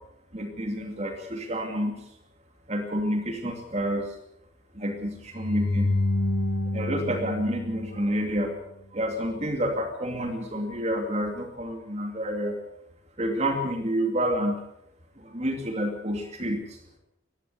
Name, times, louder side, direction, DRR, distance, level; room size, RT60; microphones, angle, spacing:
voice 1, 0.3-2.1 2.7-4.2 4.7-6.0 6.7-8.5 8.9-12.6 13.2-14.6 15.2-16.8, equal, 35° right, 4 dB, 2.6 m, -29 dB
sound 1, 5.3-8.5, left 2 dB, 75° left, 5.0 m, -28 dB
20.0 x 16.0 x 8.3 m, 0.83 s
head